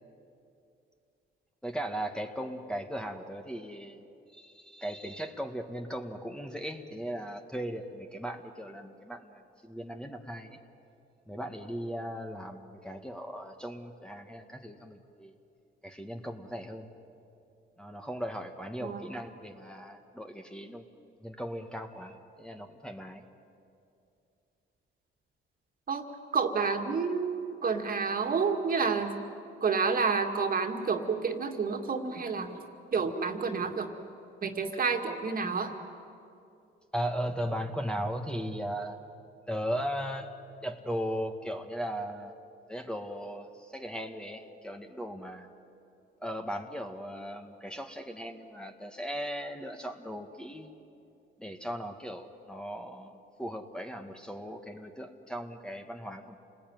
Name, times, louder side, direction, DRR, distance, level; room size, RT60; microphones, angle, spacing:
voice 1, 1.6-4.0 4.3-10.6 11.3-15.3 15.8-16.9 17.8-20.8 21.2-23.2 36.9-39.0 39.5-40.3 40.6-42.3 42.7-45.5 46.2-50.7 51.4-56.4, equal, 5° left, 4 dB, 1.8 m, -37 dB
voice 2, 26.3-29.2 29.6-32.6 32.9-33.9 34.4-35.7, right 5 dB, 45° right, 5 dB, 2.4 m, -29 dB
28.5 x 20.0 x 9.5 m, 2.6 s
cardioid pair, 90°, 20 cm